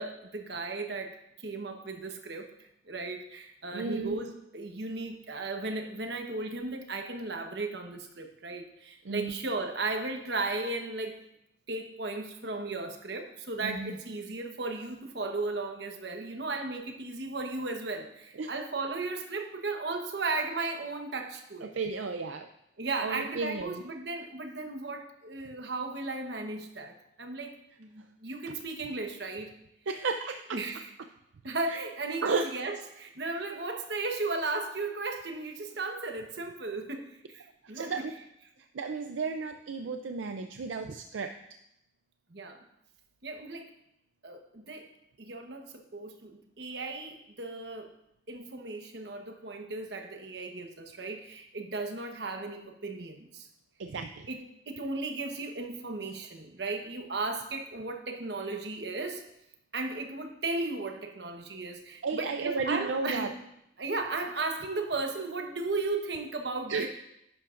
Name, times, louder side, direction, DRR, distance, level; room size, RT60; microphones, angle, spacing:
voice 1, 0.0-11.2 11.7-21.7 22.8-29.5 30.5-30.9 31.4-38.0 42.3-42.6 43.2-43.7 44.2-44.9 45.2-47.9 48.3-53.5 54.3-59.2 59.7-63.3 63.8-66.9, right 3 dB, 55° right, 4 dB, 1.1 m, -35 dB
voice 2, 3.7-4.3 9.0-9.3 13.6-13.9 18.4-18.5 21.6-22.5 23.0-23.8 29.9-30.6 31.7-31.8 32.2-32.5 37.7-38.1 38.7-41.3 53.8-54.3 62.0-63.3 66.7-66.9, right 4 dB, 75° right, 6 dB, 0.5 m, -33 dB
10.5 x 10.5 x 2.5 m, 0.80 s
head